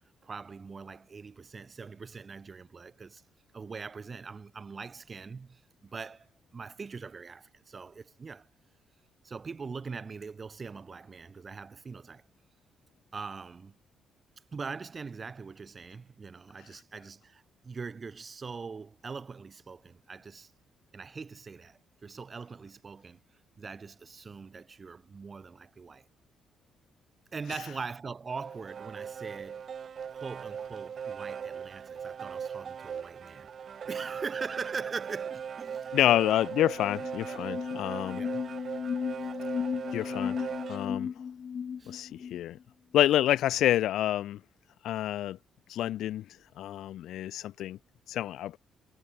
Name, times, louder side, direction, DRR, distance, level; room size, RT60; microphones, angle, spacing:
voice 1, 0.0-3.2 3.5-8.5 9.2-12.2 13.1-13.7 14.5-20.5 20.9-23.2 23.6-26.1 27.3-29.6 30.1-36.0 38.1-38.4 41.8-42.0, right 5 dB, 35° right, 4.5 m, -42 dB
sound 1, 28.3-40.9, right 7 dB, 50° right, 1.5 m, -39 dB
voice 2, 35.9-38.2 39.9-41.1 41.9-42.6 42.9-44.4 44.8-45.4 45.7-46.2 46.6-47.8 48.1-48.6, left 12 dB, 80° left, 1.3 m, -28 dB
sound 2, 36.7-42.5, left 7 dB, 50° left, 4.4 m, -35 dB
cardioid pair, 90°, 0 cm